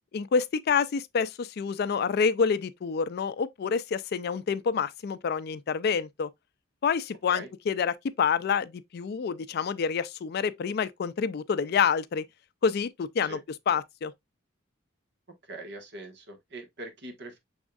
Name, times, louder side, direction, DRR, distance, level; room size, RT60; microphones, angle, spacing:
voice 1, 0.1-6.3 6.8-12.2 12.6-13.4 13.7-14.1, left 6 dB, 50° left, 0.4 m, -27 dB
voice 2, 15.4-17.4, right 2 dB, 55° right, 1.3 m, -42 dB
6.2 x 3.6 x 2.3 m
head